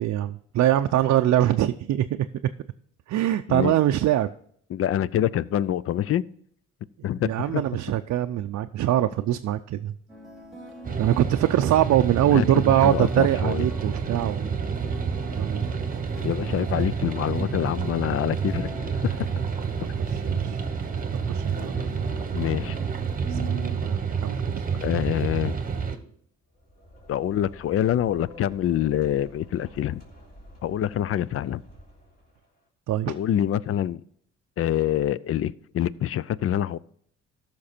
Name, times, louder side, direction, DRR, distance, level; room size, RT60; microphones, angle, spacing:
voice 1, 0.0-2.3 3.1-4.3 7.3-9.9 11.0-14.5 15.4-15.7 16.6-16.9 20.1-20.6 21.3-22.0 23.3-24.7 32.9-33.1, right 12 dB, 65° right, 0.5 m, -23 dB
voice 2, 4.7-6.2 7.0-7.6 12.3-13.6 16.2-19.3 22.3-22.8 24.7-25.6 27.1-30.0 30.6-31.6 33.1-34.0 34.6-36.8, left 11 dB, 50° left, 0.4 m, -26 dB
sound 1, 10.1-23.8, right 2 dB, ahead, 2.6 m, -43 dB
sound 2, 10.8-26.0, right 6 dB, 30° right, 1.2 m, -29 dB
sound 3, 26.4-32.5, left 1 dB, 30° left, 3.3 m, -48 dB
14.0 x 5.9 x 4.3 m
cardioid pair, 90°, 30 cm